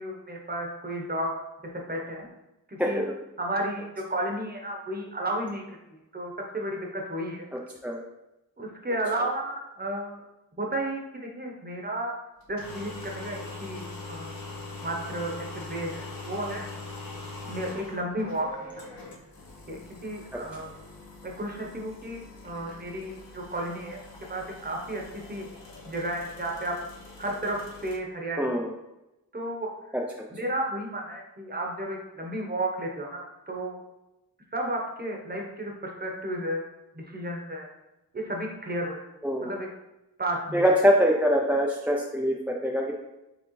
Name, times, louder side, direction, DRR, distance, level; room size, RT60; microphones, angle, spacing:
voice 1, 0.0-1.3 1.7-2.3 2.7-3.0 3.4-5.6 5.9-7.5 8.6-10.2 10.6-12.1 12.5-14.3 14.8-16.7 17.4-18.5 19.7-20.6 21.2-24.0 24.3-25.5 25.8-26.8 27.2-28.5 29.3-29.7 30.3-33.8 34.5-36.6 36.9-37.7 38.1-39.0 39.4-39.7 40.2-40.6, right 1 dB, 25° right, 0 dB, 1.0 m, -33 dB
voice 2, 2.8-3.1 7.8-8.0 20.3-20.4 28.4-28.7 29.9-30.0 39.2-39.6 40.5-42.9, equal, 5° right, -1 dB, 0.5 m, -24 dB
sound 1, 12.4-28.0, left 2 dB, 70° left, 1.0 m, -43 dB
5.1 x 3.2 x 3.2 m, 0.95 s
cardioid pair, 75°, 37 cm